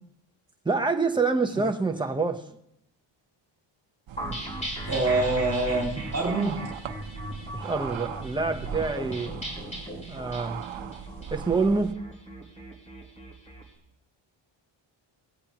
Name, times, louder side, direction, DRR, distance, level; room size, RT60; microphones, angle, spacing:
voice 1, 0.6-2.5 7.5-9.3 10.1-10.6 11.3-12.0, right 4 dB, 10° right, 4 dB, 0.9 m, -26 dB
sound 1, 4.1-11.9, right 8 dB, 70° right, 1.0 m, -39 dB
sound 2, 4.2-13.6, equal, 15° left, 3.0 m, -38 dB
voice 2, 4.9-6.6, right 2 dB, 30° right, -1 dB, 2.3 m, -25 dB
18.5 x 8.6 x 3.0 m, 0.78 s
cardioid pair, 100°, 48 cm